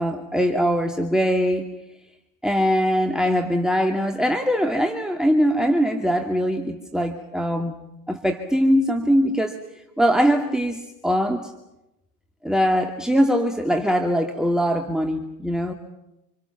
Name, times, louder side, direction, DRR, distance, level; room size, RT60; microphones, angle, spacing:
voice 1, 0.0-1.7 2.4-7.8 8.1-9.6 10.0-11.5 12.4-15.7, equal, ahead, 4 dB, 2.5 m, -22 dB
29.0 x 28.0 x 6.0 m, 0.92 s
figure-of-eight pair, 70°, 50 cm